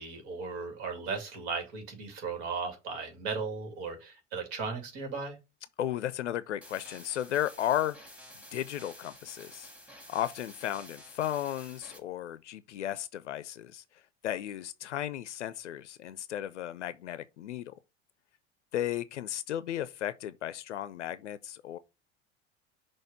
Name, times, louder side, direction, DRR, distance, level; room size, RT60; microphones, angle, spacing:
voice 1, 0.0-5.4, right 4 dB, 60° right, 2.5 m, -36 dB
voice 2, 5.8-8.0 8.5-9.7 10.1-13.8 14.2-17.7 18.7-21.8, left 12 dB, 80° left, 0.5 m, -34 dB
sound 1, 6.6-12.0, equal, 5° right, 2.0 m, -51 dB
6.3 x 3.2 x 5.4 m
figure-of-eight pair, 70°, 35 cm